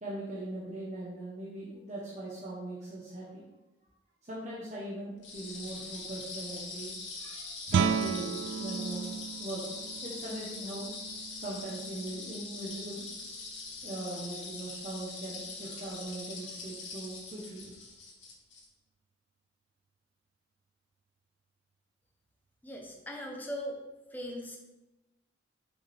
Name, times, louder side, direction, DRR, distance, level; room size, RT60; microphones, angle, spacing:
voice 1, 0.0-3.4 4.2-9.1 9.4-10.9 11.4-13.0 13.8-17.7, right 1 dB, 40° right, -6 dB, 1.0 m, -40 dB
sound 1, 5.2-18.6, left 3 dB, 90° left, 2.0 m, -42 dB
Guitar, 7.7-13.2, right 6 dB, 85° right, 0.3 m, -35 dB
voice 2, 22.6-23.8 24.1-24.6, equal, 10° left, 0 dB, 1.0 m, -39 dB
5.7 x 5.4 x 3.4 m, 1.0 s
head